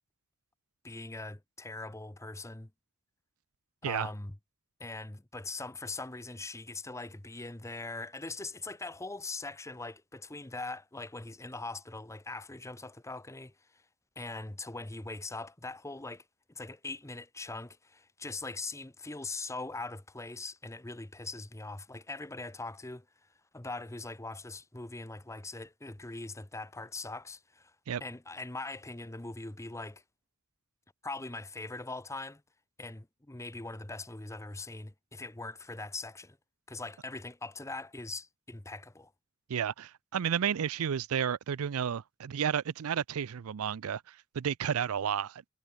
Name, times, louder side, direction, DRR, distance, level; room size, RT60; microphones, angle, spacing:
voice 1, 0.8-2.7 3.8-4.4 4.8-13.8 14.2-16.2 16.5-23.0 23.5-27.7 28.0-30.0 31.0-32.4 32.8-36.4 36.7-39.1, left 3 dB, 15° left, 0.9 m, -41 dB
voice 2, 39.5-45.4, right 8 dB, 85° right, 0.5 m, -32 dB
head